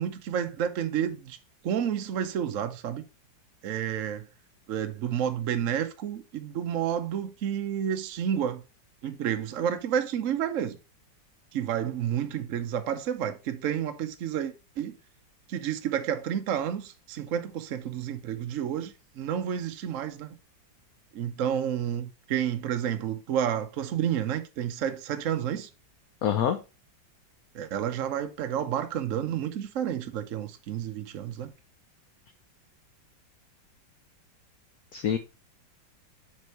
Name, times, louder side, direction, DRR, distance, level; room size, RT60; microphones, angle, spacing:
voice 1, 0.0-1.4 1.6-3.0 3.6-4.3 4.7-8.6 9.0-10.8 11.5-14.9 15.5-20.3 21.1-25.7 27.5-31.5, right 9 dB, 60° right, 0.8 m, -30 dB
voice 2, 26.2-26.6 34.9-35.2, left 9 dB, 65° left, 0.9 m, -25 dB
6.5 x 4.5 x 4.4 m
omnidirectional pair, 2.1 m